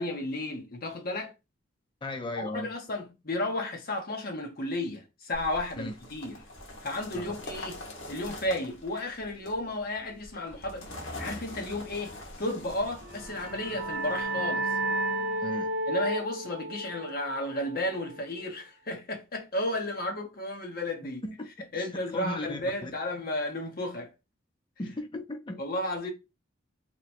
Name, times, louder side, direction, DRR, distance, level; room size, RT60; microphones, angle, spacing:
voice 1, 0.0-1.3 2.4-6.4 6.8-10.9 11.2-14.7 15.9-21.2 21.7-24.1 25.6-26.1, left 1 dB, 50° left, 0.9 m, -33 dB
voice 2, 2.0-2.7 5.8-6.0 7.1-7.4 15.4-15.7 21.2-21.5 21.7-22.9 24.8-25.6, left 1 dB, 25° left, 0.5 m, -36 dB
sound 1, 5.3-14.2, left 1 dB, 80° left, 1.0 m, -44 dB
sound 2, 12.3-16.4, right 2 dB, 10° right, 0.9 m, -51 dB
sound 3, 13.1-18.5, right 1 dB, 60° right, 0.7 m, -33 dB
3.0 x 2.2 x 4.2 m
head